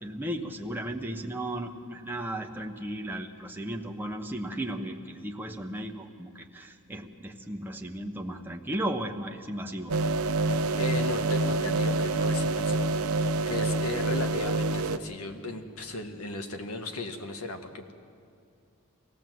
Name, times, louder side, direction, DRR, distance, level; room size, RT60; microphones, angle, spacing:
voice 1, 0.0-9.9, right 1 dB, 10° right, 2 dB, 1.0 m, -35 dB
Evolving drone, 9.9-15.0, right 2 dB, 70° right, 0.9 m, -27 dB
voice 2, 10.8-13.2 13.5-17.9, left 2 dB, 70° left, 5 dB, 1.8 m, -36 dB
25.0 x 17.5 x 7.7 m, 2.4 s
head